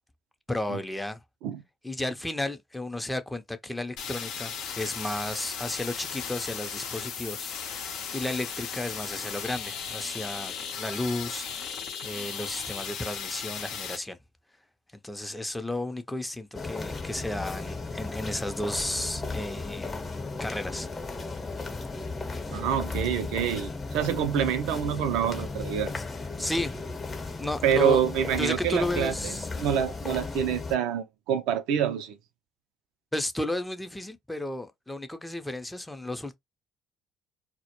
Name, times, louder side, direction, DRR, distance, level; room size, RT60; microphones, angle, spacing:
voice 1, 0.5-1.2 1.8-7.5 8.1-11.7 12.0-14.2 15.0-20.0 20.4-20.9 26.4-26.9 27.4-28.0 28.4-29.5 33.1-36.4, left 1 dB, 10° left, 0.5 m, -33 dB
sound 1, 4.0-14.0, left 7 dB, 70° left, 0.6 m, -36 dB
sound 2, 16.5-30.8, left 3 dB, 30° left, 0.8 m, -35 dB
voice 2, 22.5-26.0 27.6-32.2, right 9 dB, 70° right, 0.4 m, -27 dB
2.1 x 2.0 x 2.9 m
hypercardioid pair, 55°, 0 cm